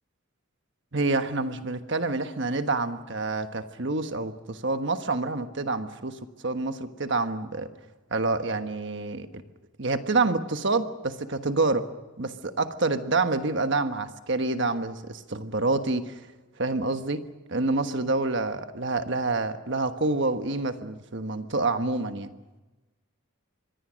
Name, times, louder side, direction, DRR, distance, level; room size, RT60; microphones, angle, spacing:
voice 1, 0.9-7.7 8.1-9.3 9.8-11.9 12.2-16.1 16.6-17.2 17.5-22.3, right 3 dB, 55° right, 8 dB, 1.3 m, -27 dB
26.0 x 22.0 x 6.4 m, 1.1 s
head